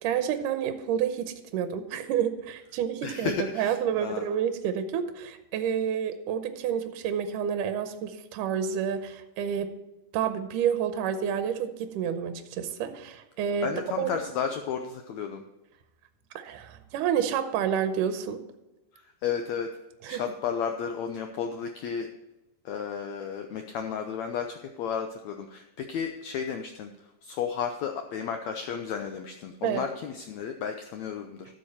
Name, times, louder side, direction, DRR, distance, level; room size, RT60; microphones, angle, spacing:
voice 1, 0.0-9.7 10.1-13.7 14.0-14.1 16.4-18.4 20.0-20.2 29.6-29.8, right 8 dB, 75° right, 9 dB, 2.2 m, -29 dB
voice 2, 3.0-4.3 13.6-15.4 19.2-19.7 20.1-22.1 22.6-26.9 27.2-31.5, left 7 dB, 85° left, 5 dB, 1.5 m, -33 dB
12.5 x 7.5 x 4.2 m, 1.0 s
omnidirectional pair, 4.0 m